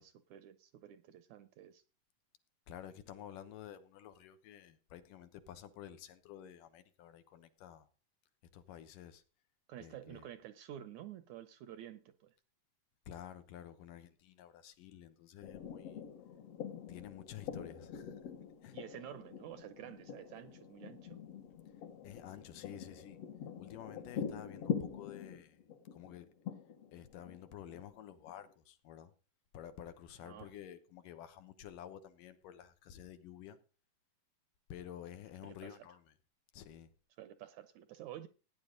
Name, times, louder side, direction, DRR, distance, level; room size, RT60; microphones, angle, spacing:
voice 1, 0.0-1.8 9.7-12.3 18.7-21.2 30.2-30.5 35.4-35.9 37.2-38.3, right 11 dB, 75° right, 1.8 m, -50 dB
voice 2, 2.7-7.9 8.5-9.2 9.8-10.3 13.1-16.4 16.9-18.2 18.6-18.8 22.0-23.2 23.6-25.7 25.9-26.3 26.9-29.1 29.5-33.6 34.7-36.1 36.5-36.9, left 10 dB, 75° left, 2.7 m, -51 dB
sound 1, 15.4-28.5, left 8 dB, 55° left, 2.0 m, -44 dB
17.0 x 9.8 x 3.9 m
omnidirectional pair, 3.9 m